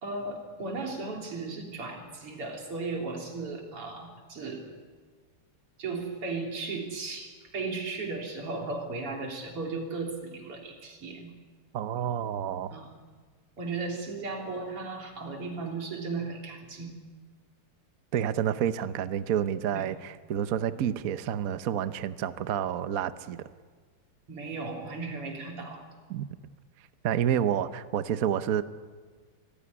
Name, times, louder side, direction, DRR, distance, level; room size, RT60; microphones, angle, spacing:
voice 1, 0.0-4.7 5.8-11.3 12.7-12.9 13.6-16.9 19.7-19.9 24.3-25.8, right 3 dB, 90° right, 1 dB, 4.4 m, -36 dB
voice 2, 11.7-12.7 18.1-23.5 26.1-26.3 27.0-28.6, right 9 dB, 60° right, 12 dB, 0.9 m, -29 dB
26.0 x 15.5 x 9.8 m, 1.5 s
omnidirectional pair, 2.4 m